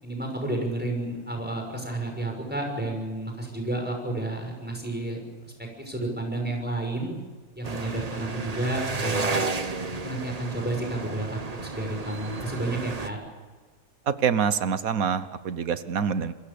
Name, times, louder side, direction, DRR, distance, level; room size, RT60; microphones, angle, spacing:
voice 1, 0.0-5.2 5.6-7.1 7.6-9.4 10.0-13.2, right 2 dB, 5° right, 2 dB, 5.9 m, -31 dB
sound 1, 7.6-13.1, right 3 dB, 30° right, 1.2 m, -32 dB
voice 2, 14.1-16.3, right 7 dB, 80° right, 13 dB, 1.5 m, -26 dB
27.5 x 21.5 x 7.0 m, 1.4 s
omnidirectional pair, 1.4 m